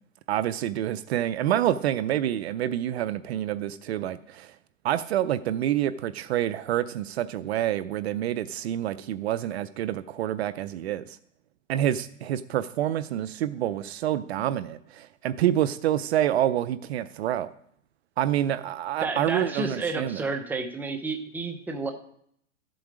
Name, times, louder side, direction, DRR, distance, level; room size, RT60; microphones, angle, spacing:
voice 1, 0.3-4.5 4.8-11.2 11.7-17.5 18.2-20.2, right 12 dB, 55° right, 14 dB, 0.6 m, -27 dB
voice 2, 19.0-21.9, right 3 dB, 5° right, 5 dB, 0.8 m, -31 dB
14.0 x 7.8 x 4.9 m, 0.68 s
hypercardioid pair, 145°, 39 cm